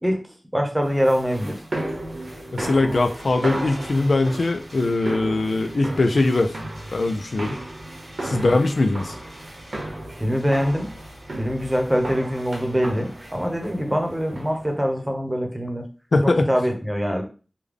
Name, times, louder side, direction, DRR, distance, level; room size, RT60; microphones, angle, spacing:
voice 1, 0.5-1.6 8.3-8.6 10.2-10.9 11.4-15.9 16.5-17.2, equal, 10° right, 2 dB, 0.9 m, -23 dB
sound 1, 0.8-14.7, right 1 dB, 85° right, 1.0 m, -35 dB
voice 2, 2.5-6.6 6.9-7.6 8.2-9.2 16.1-16.5, left 2 dB, 80° left, 6 dB, 0.4 m, -21 dB
3.5 x 2.2 x 3.5 m, 0.36 s
wide cardioid pair, 65°, 0 cm